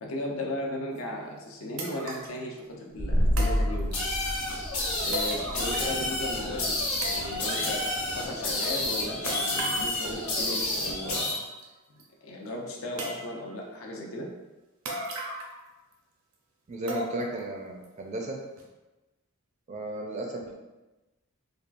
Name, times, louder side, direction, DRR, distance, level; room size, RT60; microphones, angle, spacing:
voice 1, 0.0-3.9 5.0-11.3 12.2-14.3, left 1 dB, 70° left, -1 dB, 0.5 m, -36 dB
sound 1, 1.0-1.1 1.8-2.4 3.4-4.2 5.1-6.0 6.3-6.4 7.0-7.8 9.3-9.9 10.7-10.8 11.1-11.6 12.0-12.1 13.0-13.6 14.8-15.6 15.9-16.0 16.9-17.4 17.8-17.9 18.6-18.7, right 1 dB, 75° right, 0.6 m, -37 dB
sound 2, 3.0-8.6, equal, 25° left, 0.6 m, -31 dB
sound 3, 3.9-11.3, left 2 dB, 90° left, 0.9 m, -30 dB
voice 2, 16.7-18.4 19.7-20.5, right 1 dB, 35° right, 1 dB, 0.4 m, -34 dB
3.5 x 2.2 x 2.4 m, 1.1 s
head